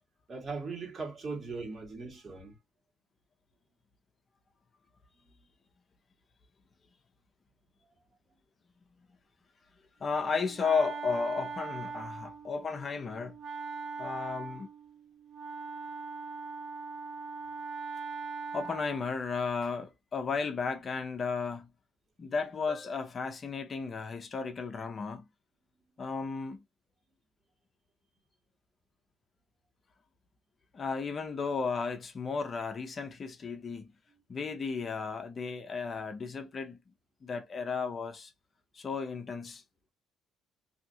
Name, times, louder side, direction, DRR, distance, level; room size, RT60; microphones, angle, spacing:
voice 1, 0.3-2.5, right 4 dB, 40° right, 1.6 m, -39 dB
voice 2, 10.0-13.4 14.0-14.7 18.5-21.7 22.2-25.3 26.0-26.6 30.7-33.9 34.3-36.8 37.2-38.3 38.7-39.6, left 5 dB, 35° left, 0.6 m, -34 dB
Wind instrument woodwind instrument, 10.0-19.1, right 4 dB, 60° right, 0.9 m, -41 dB
2.7 x 2.5 x 2.6 m
cardioid pair, 90°, 0 cm